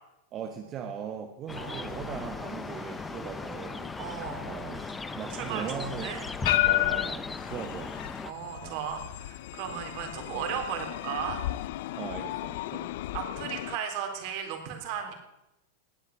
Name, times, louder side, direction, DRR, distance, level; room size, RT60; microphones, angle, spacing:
voice 1, 0.3-3.9 4.4-4.9 5.1-6.4 6.6-7.9 8.6-8.8 9.7-9.8 12.0-12.9, right 7 dB, 35° right, 5 dB, 1.2 m, -39 dB
sound 1, 1.5-13.8, left 16 dB, 65° left, 0.5 m, -34 dB
sound 2, 1.5-8.3, left 3 dB, 10° left, 0.7 m, -38 dB
Domestic sounds home sounds, 1.6-7.2, right 1 dB, 5° right, 2.8 m, -51 dB
voice 2, 4.0-4.5 5.3-6.2 8.2-11.4 13.1-15.1, right 8 dB, 55° right, 4 dB, 3.8 m, -35 dB
18.5 x 8.1 x 7.3 m, 0.93 s
supercardioid pair, 135°, 0 cm